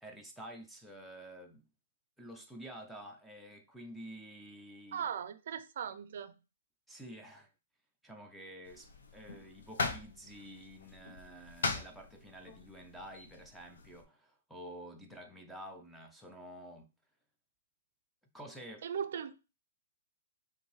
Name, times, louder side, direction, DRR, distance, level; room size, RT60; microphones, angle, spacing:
voice 1, 0.0-1.6 2.2-5.1 6.9-7.5 8.0-16.9 18.3-18.8, equal, ahead, 0.4 m, -50 dB
voice 2, 4.9-6.4 18.8-19.3, right 8 dB, 60° right, 0.4 m, -38 dB
sound 1, 8.6-14.0, left 4 dB, 85° left, 0.8 m, -41 dB
5.3 x 2.6 x 3.2 m
hypercardioid pair, 170°, 0 cm